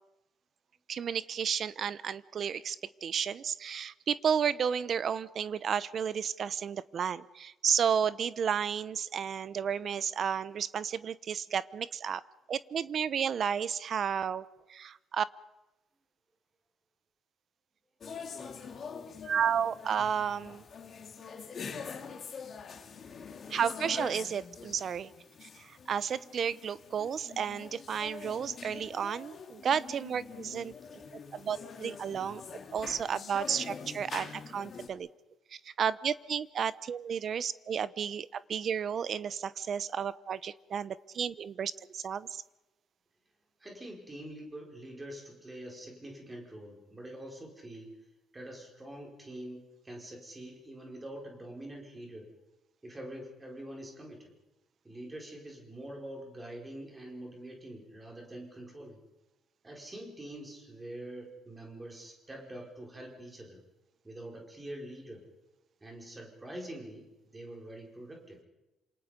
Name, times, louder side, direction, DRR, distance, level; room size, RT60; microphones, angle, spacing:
voice 1, 0.9-12.2 12.5-14.4 14.7-15.2 19.2-20.6 23.5-25.1 25.4-30.7 31.3-32.4 32.7-35.1 35.6-42.4, right 7 dB, 40° right, 16 dB, 0.8 m, -32 dB
sound 1, 18.0-34.9, left 6 dB, 35° left, 2.4 m, -45 dB
voice 2, 43.6-47.9 48.3-52.3 52.8-54.3 54.8-59.0 59.6-63.6 64.0-65.2 65.8-68.4, right 1 dB, 15° right, 0 dB, 5.2 m, -45 dB
28.0 x 27.0 x 5.2 m, 1.0 s
cardioid pair, 175°, 0 cm